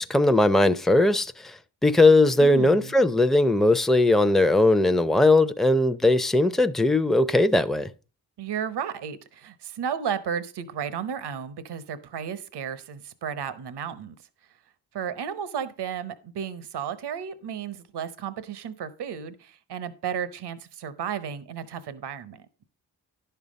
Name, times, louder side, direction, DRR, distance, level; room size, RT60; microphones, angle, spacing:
voice 1, 0.0-7.9, left 2 dB, ahead, 0.6 m, -19 dB
voice 2, 2.4-2.9 8.4-14.2 14.9-22.5, right 8 dB, 75° right, 0.9 m, -33 dB
10.5 x 5.7 x 5.1 m
supercardioid pair, 40°, 41 cm